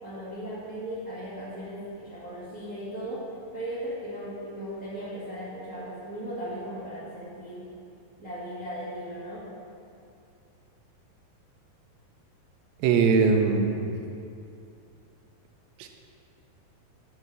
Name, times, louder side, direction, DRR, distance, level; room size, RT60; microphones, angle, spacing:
voice 1, 0.0-7.7 8.2-9.5, equal, 55° right, -11 dB, 0.8 m, -37 dB
voice 2, 12.8-13.9 15.8-15.9, right 5 dB, 80° right, 4 dB, 2.2 m, -21 dB
7.8 x 4.9 x 6.8 m, 2.6 s
omnidirectional pair, 4.7 m